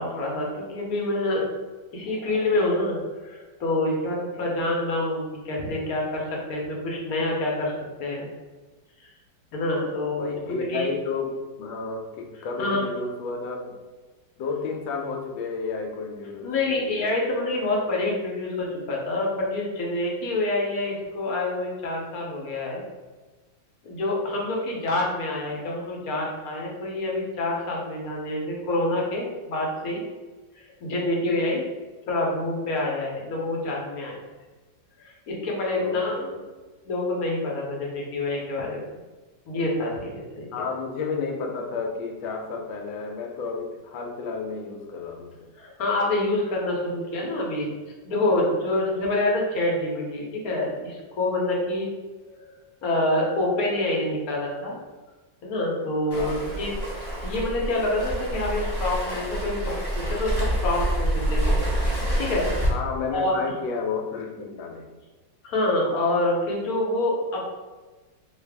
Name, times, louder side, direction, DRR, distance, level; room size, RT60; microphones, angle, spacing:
voice 1, 0.0-1.4 1.9-7.7 8.0-8.3 9.5-10.9 12.6-12.8 16.4-22.8 23.8-30.0 30.6-31.6 32.1-34.1 35.0-36.1 36.8-38.8 39.5-40.5 45.6-47.7 48.0-51.9 52.2-54.8 55.4-56.7 57.2-62.5 63.1-63.3 65.4-67.5, left 2 dB, 60° left, -2 dB, 1.1 m, -27 dB
voice 2, 10.2-13.8 14.4-16.8 25.5-25.6 35.8-36.4 40.5-45.5 56.1-56.4 62.7-64.9, left 4 dB, 85° left, 2 dB, 1.3 m, -32 dB
Waves surf, 56.1-62.7, right 1 dB, 25° left, 0.5 m, -27 dB
4.0 x 2.4 x 3.4 m, 1.3 s
omnidirectional pair, 2.1 m